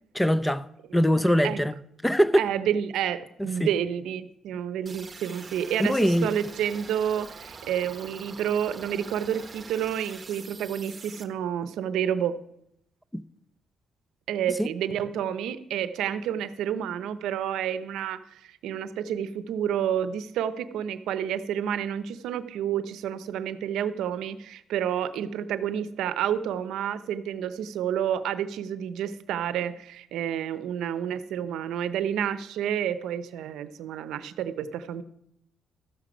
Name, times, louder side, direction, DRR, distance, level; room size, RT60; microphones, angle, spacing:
voice 1, 0.1-0.6 0.9-1.8 2.0-2.4 3.4-3.7 5.8-6.3 13.1-13.2 14.6-14.7, equal, 5° left, 0.5 m, -22 dB
voice 2, 2.4-12.4 14.3-35.0, right 9 dB, 85° right, 0.6 m, -29 dB
sound 1, 4.9-11.2, right 4 dB, 30° right, 1.1 m, -44 dB
13.0 x 7.5 x 5.1 m
cardioid pair, 90°, 0 cm